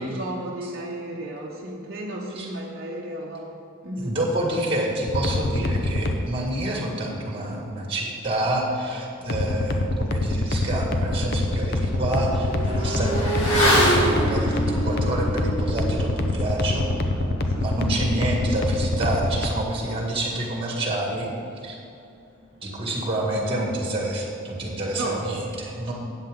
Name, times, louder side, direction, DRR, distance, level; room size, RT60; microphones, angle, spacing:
voice 1, 0.0-3.5 3.8-4.2 17.4-17.9 24.9-25.2 25.8-25.9, right 1 dB, 45° right, -4 dB, 1.0 m, -34 dB
voice 2, 3.9-16.9 17.6-21.3 21.6-21.8 22.6-25.9, right 1 dB, 25° right, -1 dB, 2.1 m, -28 dB
sound 1, 5.1-6.2 9.3-19.5, left 2 dB, 50° left, 0.7 m, -25 dB
Motorcycle / Accelerating revving vroom, 10.5-10.6 10.9-21.0 21.2-21.3, equal, 65° left, 2.8 m, -28 dB
13.5 x 9.1 x 3.8 m, 2.7 s
head